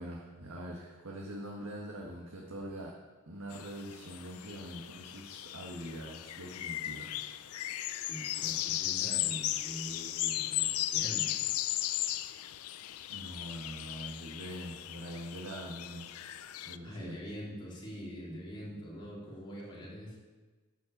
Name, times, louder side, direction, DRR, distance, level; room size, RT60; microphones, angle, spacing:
voice 1, 0.0-7.2 13.1-16.2 16.6-17.2, right 1 dB, 90° right, -2 dB, 1.5 m, -43 dB
sound 1, 3.5-16.8, left 14 dB, 80° left, 0.4 m, -36 dB
voice 2, 8.1-11.4 16.8-20.2, equal, 25° left, -6 dB, 3.4 m, -44 dB
12.0 x 5.6 x 7.3 m, 1.3 s
head